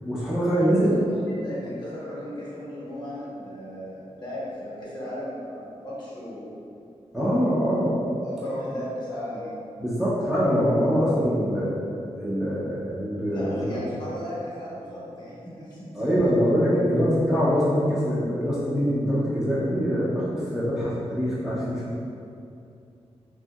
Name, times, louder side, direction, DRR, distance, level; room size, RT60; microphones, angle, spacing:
voice 1, 0.0-1.0 7.1-8.0 9.8-11.8 12.2-13.8 15.9-21.9, equal, 5° right, -10 dB, 0.5 m, -24 dB
voice 2, 0.6-6.6 8.2-9.5 13.3-16.1, equal, 40° left, -8 dB, 0.9 m, -36 dB
2.8 x 2.6 x 2.3 m, 2.6 s
wide cardioid pair, 110°, 11 cm